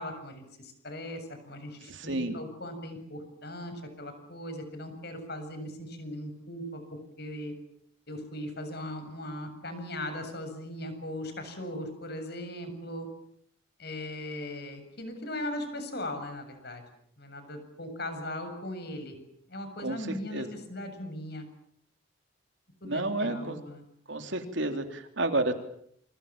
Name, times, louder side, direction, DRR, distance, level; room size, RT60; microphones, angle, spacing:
voice 1, 0.0-7.5 8.1-13.1 13.8-16.8 17.2-19.2 19.5-21.5 22.8-23.8, left 1 dB, 50° left, 8 dB, 7.4 m, -39 dB
voice 2, 22.8-23.6 24.1-25.5, right 2 dB, 65° right, 6 dB, 3.6 m, -30 dB
29.0 x 26.0 x 7.5 m, 0.69 s
head